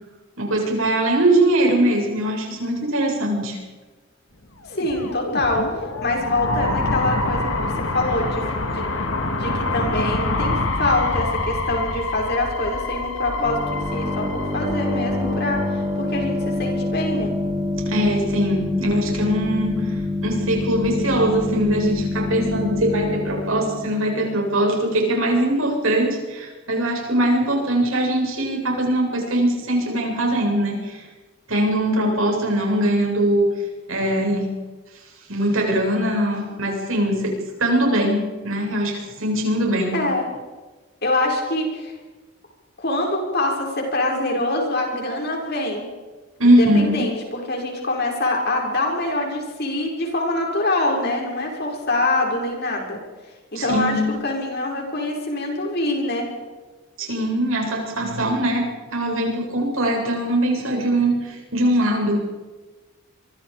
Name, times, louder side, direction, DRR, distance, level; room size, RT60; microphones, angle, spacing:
voice 1, 0.4-3.6 17.7-31.1 31.5-33.5 33.9-34.5 35.3-40.0 46.4-47.1 53.5-54.2 57.0-62.3, right 1 dB, 75° right, 1 dB, 7.6 m, -21 dB
sound 1, 4.7-15.6, left 2 dB, 70° left, 2.9 m, -26 dB
voice 2, 4.7-5.7 6.0-8.9 9.1-17.3 39.9-40.2 41.0-41.9 42.8-45.9 46.4-53.0 53.5-56.3, left 2 dB, 50° left, 1 dB, 6.5 m, -25 dB
sound 2, 13.4-24.9, left 2 dB, 25° right, 5.4 m, -26 dB
26.5 x 24.5 x 5.4 m, 1.3 s
head